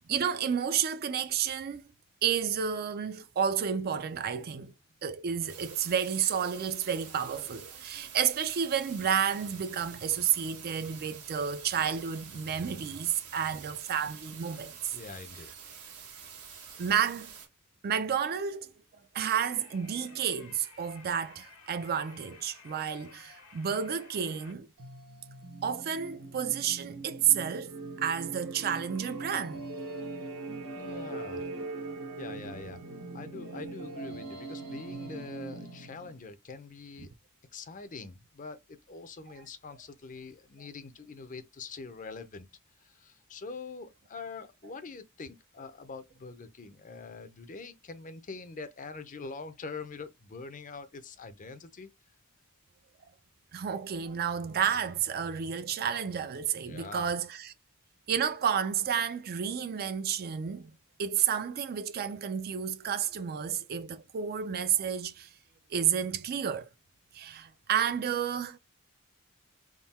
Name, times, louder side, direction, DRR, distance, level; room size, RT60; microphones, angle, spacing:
voice 1, 0.1-1.8 2.2-4.7 5.0-15.0 16.8-17.3 17.8-18.7 19.1-24.7 25.6-27.7 28.0-29.6 53.5-57.5 58.1-60.7 61.0-65.3 65.7-66.7 67.1-68.6, right 8 dB, 45° right, 0.4 m, -31 dB
sound 1, 5.5-17.5, right 7 dB, 85° right, 1.4 m, -48 dB
voice 2, 14.9-15.5 15.8-15.9 16.5-16.8 30.7-31.4 32.2-32.8 33.1-37.1 37.5-42.5 42.8-51.9 56.6-57.1, left 4 dB, 35° left, 0.6 m, -44 dB
sound 2, 19.3-24.5, left 4 dB, 80° left, 1.3 m, -54 dB
sound 3, 24.8-36.2, right 3 dB, 65° right, 1.0 m, -41 dB
3.7 x 2.2 x 4.1 m
head